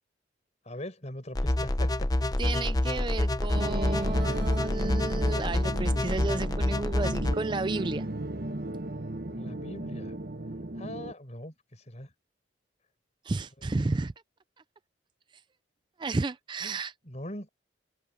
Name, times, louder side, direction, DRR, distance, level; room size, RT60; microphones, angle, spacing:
voice 1, 0.6-2.1 9.3-10.1 10.8-12.1 13.8-13.9 16.6-16.8 17.0-17.5, left 1 dB, 35° left, 5.0 m, -41 dB
sound 1, 1.4-7.3, left 1 dB, 20° left, 0.7 m, -27 dB
voice 2, 2.4-8.1 13.2-14.1 16.0-16.9, right 3 dB, 25° right, 0.4 m, -32 dB
sound 2, 3.5-11.1, right 1 dB, 50° right, 1.2 m, -35 dB
open air
head